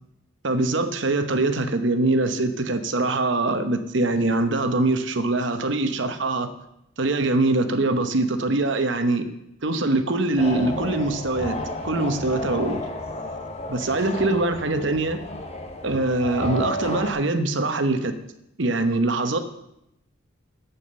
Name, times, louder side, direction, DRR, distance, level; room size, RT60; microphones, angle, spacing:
voice 1, 0.4-6.5 7.0-9.3 9.6-11.6 11.8-12.8 13.7-15.2 15.8-18.1 18.6-19.4, right 2 dB, 60° right, 8 dB, 0.9 m, -23 dB
sound 1, 10.4-17.1, left 1 dB, 30° left, 1.0 m, -32 dB
8.5 x 7.1 x 6.9 m, 0.81 s
head